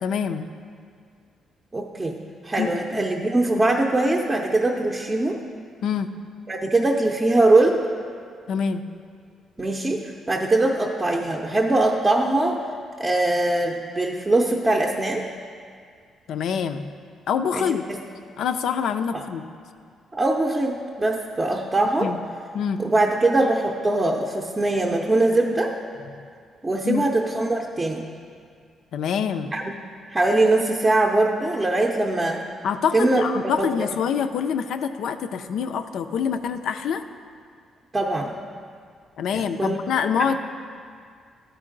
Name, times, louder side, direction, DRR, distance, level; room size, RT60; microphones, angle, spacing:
voice 1, 0.0-0.5 2.6-2.8 5.8-6.1 8.5-8.8 16.3-16.9 17.3-17.8 18.4-19.4 22.0-22.2 22.5-22.8 26.8-27.0 28.9-29.5 32.6-37.0 39.2-40.4, left 7 dB, 75° left, 9 dB, 0.4 m, -25 dB
voice 2, 1.7-2.2 2.4-5.4 6.5-7.8 9.6-12.6 13.0-15.2 17.5-18.0 20.1-22.1 22.8-25.7 26.6-28.0 29.5-29.7 30.1-32.4 32.9-33.9 37.9-38.3 39.3-39.8 40.2-40.3, right 2 dB, 20° right, -1 dB, 0.6 m, -22 dB
12.5 x 4.5 x 3.8 m, 2.2 s
cardioid pair, 90°, 0 cm